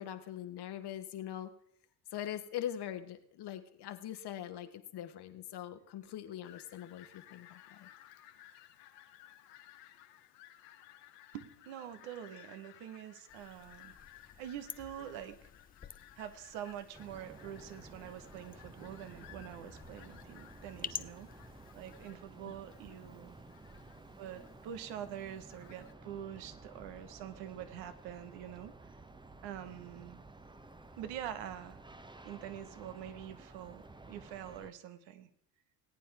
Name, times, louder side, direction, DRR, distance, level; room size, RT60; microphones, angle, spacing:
voice 1, 0.0-1.5 2.1-7.9 22.4-22.5, left 11 dB, 55° left, 9 dB, 1.3 m, -42 dB
Fowl, 6.4-25.9, left 12 dB, 85° left, 1.0 m, -59 dB
voice 2, 11.3-13.9 14.3-15.5 16.2-21.3 21.7-23.4 24.2-28.7 29.4-30.2 31.0-32.0 32.2-35.3, right 10 dB, 75° right, 11 dB, 1.2 m, -45 dB
sound 1, 13.3-22.1, left 7 dB, 20° left, 0.5 m, -50 dB
sound 2, 16.9-34.7, right 2 dB, 10° right, 0.8 m, -54 dB
19.0 x 9.1 x 3.4 m, 0.68 s
hypercardioid pair, 65°, 46 cm